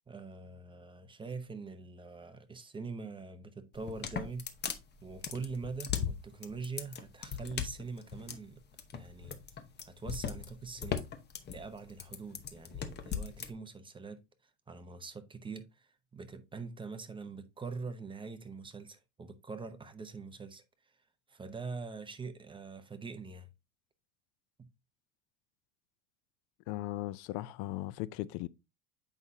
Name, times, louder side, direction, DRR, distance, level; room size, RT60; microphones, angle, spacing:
voice 1, 0.1-4.4 5.0-8.6 8.9-9.4 9.9-11.0 11.5-14.2 14.7-20.6 21.3-23.5 24.6-24.7, right 4 dB, 15° right, 0.6 m, -43 dB
sound 1, 3.7-13.5, left 7 dB, 25° left, 0.9 m, -38 dB
voice 2, 26.7-28.5, left 16 dB, 60° left, 0.5 m, -37 dB
8.1 x 5.4 x 2.7 m
supercardioid pair, 135°, 39 cm